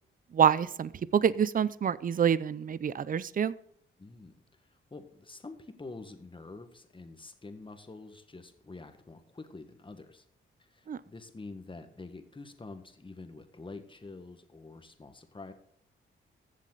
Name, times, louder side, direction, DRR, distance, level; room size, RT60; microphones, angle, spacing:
voice 1, 0.3-3.5 10.9-11.0, right 8 dB, 40° right, 18 dB, 0.5 m, -26 dB
voice 2, 4.0-10.2 10.6-15.5, left 3 dB, 25° left, 8 dB, 1.6 m, -47 dB
14.5 x 7.5 x 4.0 m, 0.68 s
cardioid pair, 75°, 21 cm